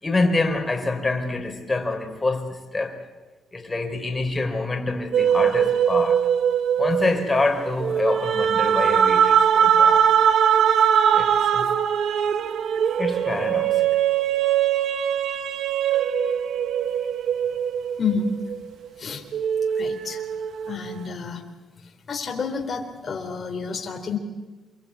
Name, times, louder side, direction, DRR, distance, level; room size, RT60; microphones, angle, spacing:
voice 1, 0.0-3.1 3.5-6.3 6.8-10.1 11.1-11.7 13.0-14.0, left 2 dB, 20° left, 4.7 m, -26 dB
sound 1, 5.1-18.9 19.3-20.9, right 8 dB, 70° right, 1.6 m, -21 dB
voice 2, 18.0-18.3 19.0-19.2 19.8-20.2 20.7-21.4 22.1-24.2, left 5 dB, 45° left, 3.8 m, -29 dB
27.0 x 24.0 x 8.7 m
cardioid pair, 90°, 0 cm